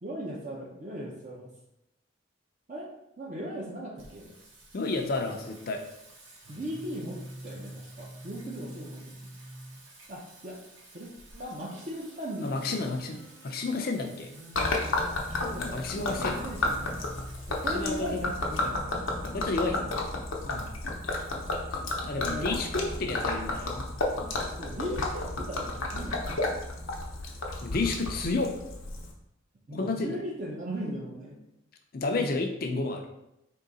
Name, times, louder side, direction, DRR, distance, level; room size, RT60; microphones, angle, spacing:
voice 1, 0.0-1.5 2.7-2.9 3.2-4.3 6.5-9.1 10.1-10.6 10.9-11.1 11.4-12.8 14.9-17.0 17.5-19.1 20.4-20.7 22.2-22.7 24.6-26.4 29.7-31.4 32.1-32.2, equal, 40° right, -2 dB, 0.6 m, -38 dB
Singing, 4.0-21.6, right 1 dB, 70° right, 1.2 m, -49 dB
voice 2, 4.7-5.8 12.4-14.3 15.6-16.4 17.7-18.2 18.6-18.9 19.2-19.8 21.7-23.9 27.6-28.5 29.7-30.2 31.9-33.1, left 3 dB, 50° left, 4 dB, 0.5 m, -31 dB
Gurgling / Liquid, 14.5-29.1, left 2 dB, 85° left, 0.7 m, -32 dB
3.8 x 2.8 x 4.0 m, 0.85 s
head